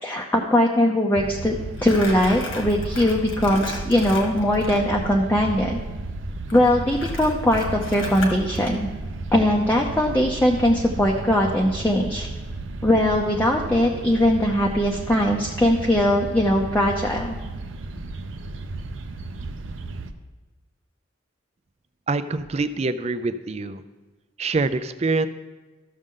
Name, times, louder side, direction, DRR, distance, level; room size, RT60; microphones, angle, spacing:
voice 1, 0.0-1.6 1.8-5.8 6.5-8.9 9.3-12.3 12.8-17.4, left 1 dB, 10° left, -1 dB, 0.6 m, -20 dB
sound 1, 1.1-20.1, right 2 dB, 80° right, 0.6 m, -34 dB
Crumpling crinkling, 1.8-4.8 6.5-8.7, left 2 dB, 85° left, 1.6 m, -35 dB
voice 2, 22.1-23.8 24.4-25.3, right 3 dB, 35° right, 12 dB, 0.4 m, -25 dB
13.5 x 6.4 x 3.7 m, 1.3 s
head